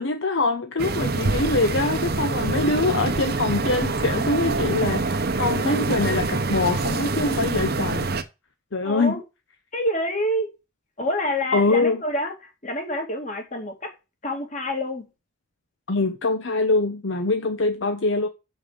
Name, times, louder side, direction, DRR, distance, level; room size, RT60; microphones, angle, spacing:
voice 1, 0.0-8.1 8.7-9.2 11.5-12.0 15.9-18.3, left 3 dB, 60° left, 0.8 m, -24 dB
sound 1, 0.8-8.2, right 3 dB, 45° right, 0.9 m, -25 dB
voice 2, 8.8-9.2 9.7-10.5 11.0-13.9 14.2-15.1, left 1 dB, 35° left, 2.5 m, -27 dB
6.3 x 5.7 x 6.7 m
head